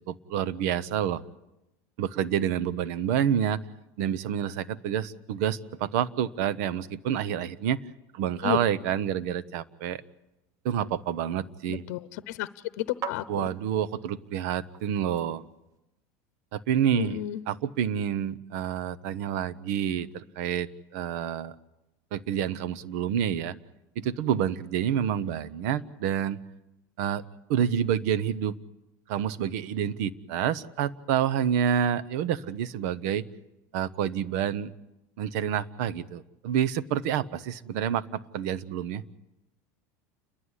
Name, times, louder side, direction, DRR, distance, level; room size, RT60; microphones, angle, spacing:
voice 1, 0.1-1.2 2.0-3.6 4.0-7.8 8.1-10.0 10.6-11.9 13.3-15.4 16.5-21.5 22.1-23.5 24.0-26.4 27.0-27.2 27.5-28.6 29.1-33.2 33.7-34.7 35.2-39.0, right 9 dB, 70° right, 16 dB, 0.9 m, -28 dB
sound 1, 10.0-15.8, right 8 dB, 35° right, 1.0 m, -46 dB
voice 2, 11.7-12.5 12.8-13.5 16.9-17.4, left 14 dB, 70° left, 13 dB, 0.9 m, -32 dB
29.5 x 11.5 x 9.9 m, 0.94 s
supercardioid pair, 145°, 9 cm